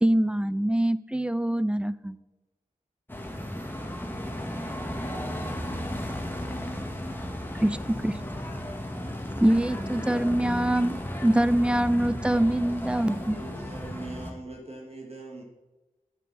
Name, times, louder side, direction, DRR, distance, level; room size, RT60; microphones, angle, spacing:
voice 1, 0.0-2.2 7.6-7.8 8.0-8.1 9.4-10.9 11.2-13.4, right 1 dB, 5° right, 15 dB, 0.4 m, -24 dB
sound 1, 3.1-14.3, equal, 15° left, 1.7 m, -34 dB
voice 2, 3.5-6.7, left 1 dB, 40° left, 0 dB, 3.5 m, -50 dB
voice 3, 12.9-15.4, right 2 dB, 45° right, 0 dB, 1.9 m, -41 dB
9.6 x 9.4 x 4.2 m, 1.1 s
wide cardioid pair, 80°, 14 cm